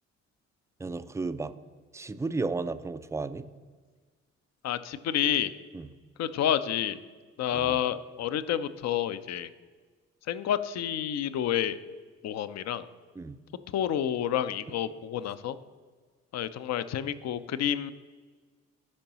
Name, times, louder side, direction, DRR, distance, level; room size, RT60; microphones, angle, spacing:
voice 1, 0.8-1.5 1.9-3.5 5.7-6.0 7.5-7.8 13.2-13.4, right 3 dB, 10° right, 12 dB, 0.4 m, -33 dB
voice 2, 4.6-5.5 6.2-7.0 7.4-9.5 10.3-11.8 12.2-12.9 13.7-15.6 16.3-17.9, left 10 dB, 45° left, 13 dB, 0.5 m, -29 dB
13.0 x 5.2 x 2.9 m, 1.5 s
hypercardioid pair, 45°, 36 cm